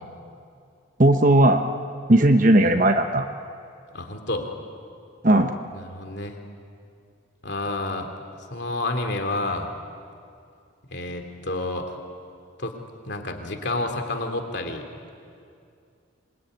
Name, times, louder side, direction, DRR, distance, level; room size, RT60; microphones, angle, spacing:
voice 1, 1.0-1.7 2.1-3.3 5.2-5.5, right 1 dB, 40° right, 6 dB, 1.0 m, -17 dB
voice 2, 3.9-4.5 5.7-6.3 7.4-8.1 8.5-9.7 10.9-11.9 12.6-12.7 13.0-14.8, left 2 dB, 55° left, 5 dB, 3.0 m, -29 dB
26.5 x 22.0 x 9.6 m, 2.4 s
head